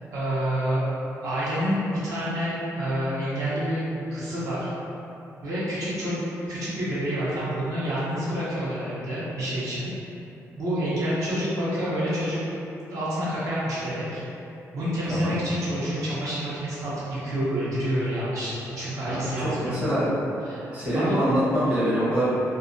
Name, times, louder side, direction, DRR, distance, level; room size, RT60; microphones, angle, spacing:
voice 1, 0.1-0.8 1.2-3.8 4.1-4.7 5.4-6.2 6.5-9.9 10.6-12.4 12.9-14.2 14.7-20.0 20.5-21.1, equal, 65° right, -10 dB, 0.7 m, -28 dB
voice 2, 19.1-20.1 20.7-22.3, equal, 20° right, -12 dB, 0.7 m, -25 dB
2.3 x 2.1 x 2.5 m, 2.8 s
cardioid pair, 170°, 6 cm